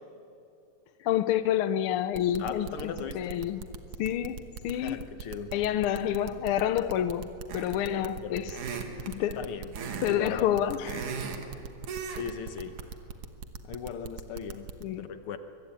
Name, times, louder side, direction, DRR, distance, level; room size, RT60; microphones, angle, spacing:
voice 1, 1.0-3.6 4.0-5.0 5.5-8.5 9.1-9.4 10.0-11.1 14.8-15.1, left 11 dB, 85° left, 1.2 m, -28 dB
sound 1, 2.1-14.8, right 6 dB, 60° right, 1.9 m, -41 dB
voice 2, 2.4-3.4 4.7-5.5 7.8-8.5 9.3-9.7 10.0-10.6 12.1-12.7 13.6-15.4, left 7 dB, 60° left, 1.7 m, -38 dB
sound 2, 7.5-7.9 8.5-9.1 9.7-10.2 10.5-11.5 11.9-12.3 12.6-12.8, right 6 dB, 90° right, 3.3 m, -37 dB
24.0 x 22.5 x 8.8 m
omnidirectional pair, 3.4 m